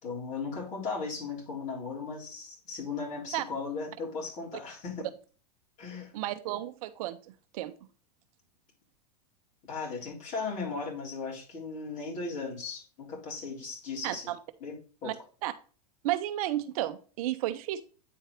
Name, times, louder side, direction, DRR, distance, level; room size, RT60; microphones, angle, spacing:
voice 1, 0.0-5.1 5.8-6.1 9.7-14.3 14.6-15.1, left 4 dB, 35° left, 3.8 m, -37 dB
voice 2, 6.1-7.2 7.5-7.7 14.0-14.4 15.0-15.1 15.4-15.5 16.0-17.8, right 14 dB, 60° right, 0.6 m, -32 dB
9.3 x 4.4 x 3.2 m
supercardioid pair, 130°, 21 cm